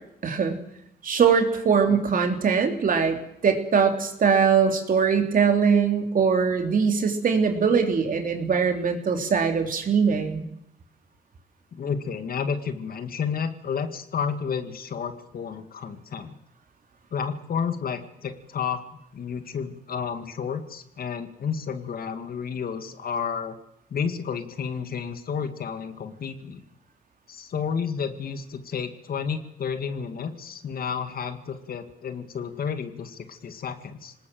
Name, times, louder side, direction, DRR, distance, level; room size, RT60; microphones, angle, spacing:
voice 1, 0.2-0.6 1.0-10.4, right 6 dB, 60° right, 5 dB, 3.2 m, -22 dB
voice 2, 11.7-16.4 17.1-18.8 19.1-23.6 23.9-26.6 27.3-34.1, left 6 dB, 65° left, 9 dB, 2.1 m, -31 dB
24.5 x 19.5 x 7.8 m, 0.76 s
cardioid pair, 95°, 16 cm